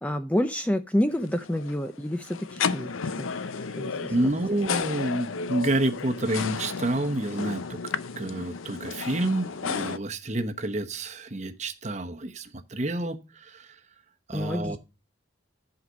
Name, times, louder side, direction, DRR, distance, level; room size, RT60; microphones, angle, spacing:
voice 1, 0.0-2.9 3.2-3.3 3.8-4.1 4.5-4.6 14.3-14.8, left 1 dB, 5° left, 0.5 m, -28 dB
sound 1, 1.1-10.0, left 5 dB, 85° left, 0.6 m, -33 dB
voice 2, 4.1-7.6 8.2-13.7 14.3-14.8, right 1 dB, 35° right, 1.0 m, -29 dB
11.5 x 5.1 x 5.1 m
head